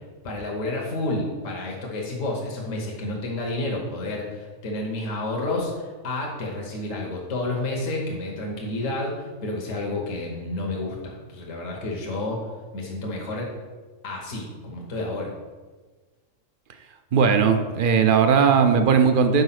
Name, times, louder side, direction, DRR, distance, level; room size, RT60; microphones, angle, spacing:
voice 1, 0.2-12.5 12.7-13.5 14.0-15.3, left 2 dB, 75° left, -1 dB, 1.5 m, -30 dB
voice 2, 17.1-19.4, right 6 dB, 55° right, 7 dB, 0.6 m, -18 dB
5.5 x 4.7 x 5.8 m, 1.4 s
omnidirectional pair, 1.3 m